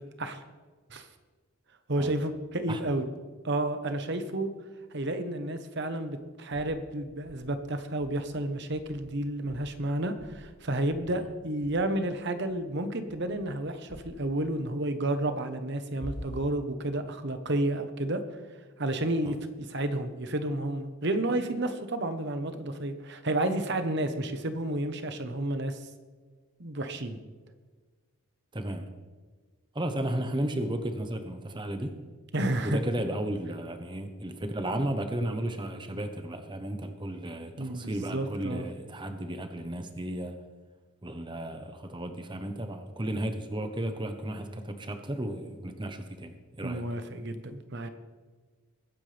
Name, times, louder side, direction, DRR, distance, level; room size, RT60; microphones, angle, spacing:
voice 1, 1.9-3.1 3.4-4.5 4.9-18.2 18.8-25.8 26.6-27.2 32.3-32.8 37.6-38.6 46.6-47.9, right 1 dB, 50° right, 9 dB, 1.1 m, -31 dB
sound 1, 6.5-6.9 7.2-7.6 8.0-8.3 8.7-9.1 9.5-9.8 10.2-10.6 10.9-11.3 11.6-11.8 12.4-12.7 13.1-13.5 13.9-14.3 16.0-16.6, equal, 20° left, 4.0 m, -46 dB
voice 2, 28.5-28.9 29.7-32.0 32.6-40.4 41.0-46.9, right 1 dB, 20° right, 7 dB, 1.0 m, -34 dB
22.0 x 9.8 x 3.4 m, 1.4 s
head